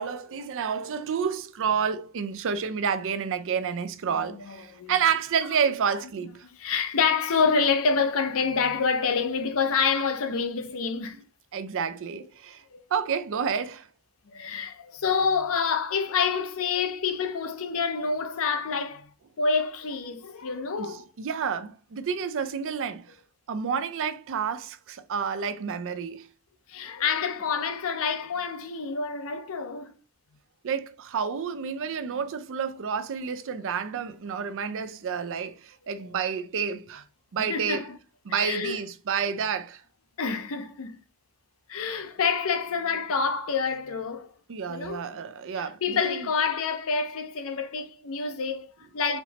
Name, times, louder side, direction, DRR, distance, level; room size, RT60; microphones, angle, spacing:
voice 1, 0.0-6.5 11.5-12.6 12.9-13.9 20.8-23.2 23.5-26.3 30.6-37.0 37.3-37.8 38.3-39.8 44.5-46.3, right 7 dB, 60° right, 0.4 m, -29 dB
voice 2, 4.3-4.9 6.6-11.2 12.7-12.8 14.3-19.1 19.4-21.0 26.7-30.0 34.7-34.8 36.0-36.1 37.4-38.0 38.3-38.8 40.2-41.0 41.7-44.3 44.7-45.2 45.6-49.2, left 5 dB, 65° left, 0.6 m, -27 dB
4.2 x 3.1 x 2.8 m
head